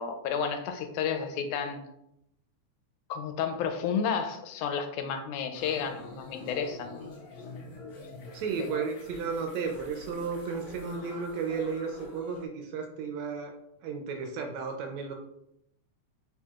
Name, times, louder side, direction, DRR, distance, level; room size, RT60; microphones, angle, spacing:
voice 1, 0.0-1.8 3.1-6.9 8.6-8.7, left 6 dB, 80° left, 6 dB, 2.0 m, -31 dB
sound 1, 5.5-12.5, left 3 dB, 60° left, 1.3 m, -46 dB
voice 2, 8.3-13.5 13.8-15.1, right 5 dB, 75° right, 2 dB, 1.8 m, -33 dB
4.5 x 4.5 x 2.3 m, 0.81 s
omnidirectional pair, 3.5 m